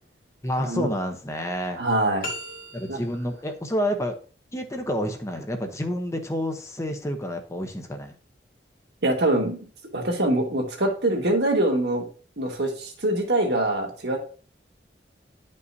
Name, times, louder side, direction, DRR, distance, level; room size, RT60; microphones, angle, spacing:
voice 1, 0.4-1.8 2.7-4.2 4.5-8.1, equal, 15° left, 5 dB, 0.9 m, -29 dB
voice 2, 1.8-2.3 2.9-3.0 9.0-9.6 9.9-12.1 12.4-14.2, right 1 dB, 65° right, 2 dB, 1.8 m, -24 dB
sound 1, 2.2-3.3, left 1 dB, 50° left, 1.6 m, -36 dB
11.0 x 5.4 x 2.7 m, 0.40 s
head